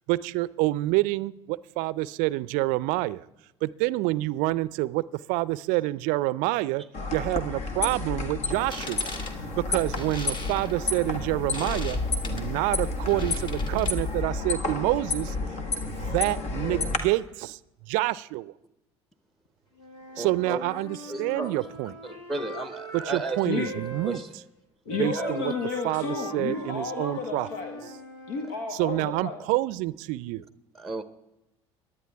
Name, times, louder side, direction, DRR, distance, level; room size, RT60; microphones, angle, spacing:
voice 1, 0.1-3.3 3.6-6.8 7.1-9.1 9.6-12.0 12.3-15.4 15.9-18.5 20.2-22.0 22.9-24.4 25.0-25.5 25.8-27.5 28.7-30.5, right 19 dB, 65° right, 0.5 m, -27 dB
sound 1, 6.9-17.0, left 3 dB, 50° left, 1.8 m, -30 dB
sound 2, 8.5-14.2, left 2 dB, 35° left, 2.2 m, -41 dB
Wind instrument woodwind instrument, 19.8-24.2 24.9-28.6, right 1 dB, 85° left, 2.2 m, -41 dB
voice 2, 20.2-20.6 21.1-21.6 22.3-23.6 24.1-24.3 25.2-25.3 30.8-31.0, right 3 dB, ahead, 1.0 m, -33 dB
voice 3, 23.4-23.8 24.8-27.8 28.3-29.4, left 4 dB, 70° left, 1.6 m, -32 dB
17.5 x 11.0 x 3.5 m
hypercardioid pair, 65°, 15 cm